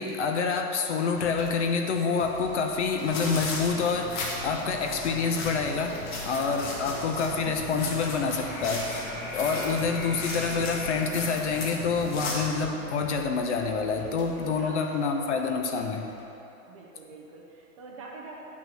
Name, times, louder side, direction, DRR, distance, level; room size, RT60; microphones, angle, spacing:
voice 1, 0.0-6.0 6.2-9.1 9.3-16.0, left 5 dB, 50° left, 4 dB, 1.0 m, -27 dB
sound 1, 1.1-16.3, left 2 dB, 70° left, 1.8 m, -46 dB
sound 2, 3.0-12.7, left 2 dB, 30° left, 1.6 m, -35 dB
voice 2, 6.6-7.0 9.5-9.9 14.6-15.1 16.6-18.4, right 3 dB, 20° right, -3 dB, 0.6 m, -46 dB
9.1 x 6.0 x 6.3 m, 3.0 s
hypercardioid pair, 160°, 46 cm